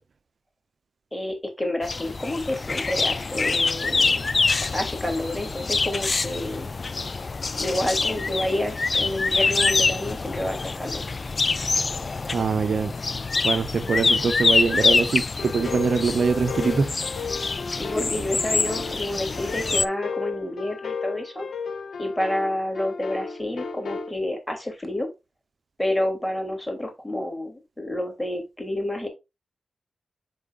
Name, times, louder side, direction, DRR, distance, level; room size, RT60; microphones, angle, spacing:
voice 1, 1.1-4.3 4.7-6.7 7.6-11.0 17.7-21.5 22.0-25.1 25.8-29.1, left 1 dB, 15° left, 3.0 m, -29 dB
sound 1, 1.8-19.9, left 4 dB, 50° left, 0.4 m, -25 dB
voice 2, 12.3-12.9 13.4-16.9, right 5 dB, 70° right, 0.7 m, -23 dB
sound 2, 15.4-24.1, left 5 dB, 80° left, 0.9 m, -34 dB
8.0 x 4.7 x 2.5 m
cardioid pair, 40°, 0 cm